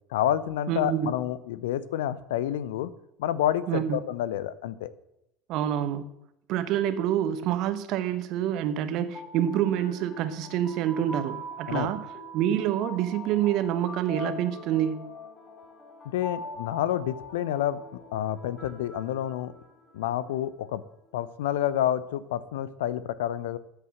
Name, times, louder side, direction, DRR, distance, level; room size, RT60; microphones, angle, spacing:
voice 1, 0.1-2.9 3.2-4.9 11.7-11.9 16.1-19.5 19.9-20.8 21.1-23.6, left 11 dB, 65° left, 17 dB, 0.7 m, -29 dB
voice 2, 0.7-1.1 3.7-4.0 5.5-6.1 6.5-12.0 12.3-15.1, right 10 dB, 50° right, 12 dB, 1.1 m, -27 dB
sound 1, 8.9-20.0, left 1 dB, 30° left, 3.4 m, -42 dB
13.5 x 8.1 x 7.7 m, 0.83 s
figure-of-eight pair, 70°, 0 cm